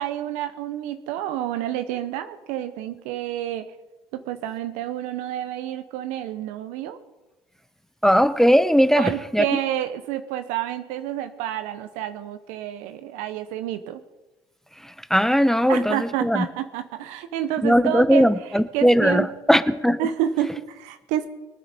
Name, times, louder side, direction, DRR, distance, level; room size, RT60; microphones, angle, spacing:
voice 1, 0.0-3.7 4.1-7.0 9.0-14.0 15.7-19.3 20.0-21.3, right 11 dB, 75° right, 10 dB, 0.8 m, -29 dB
voice 2, 8.0-9.4 15.1-16.0 16.2-16.4 17.6-20.0, equal, 5° left, 13 dB, 0.8 m, -18 dB
23.0 x 9.3 x 4.2 m, 1.1 s
hypercardioid pair, 60°, 13 cm